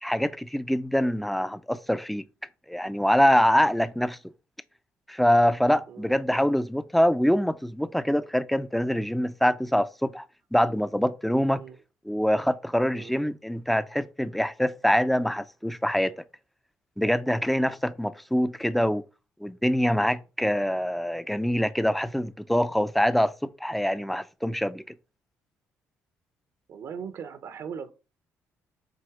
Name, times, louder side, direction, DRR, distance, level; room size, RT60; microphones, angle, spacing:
voice 1, 0.0-2.2 2.7-4.2 5.1-10.3 10.5-11.6 12.1-16.2 17.0-19.0 19.4-24.9, equal, ahead, 0.6 m, -24 dB
voice 2, 26.7-27.9, right 7 dB, 65° right, 1.0 m, -39 dB
7.7 x 2.7 x 5.0 m
cardioid pair, 85°, 6 cm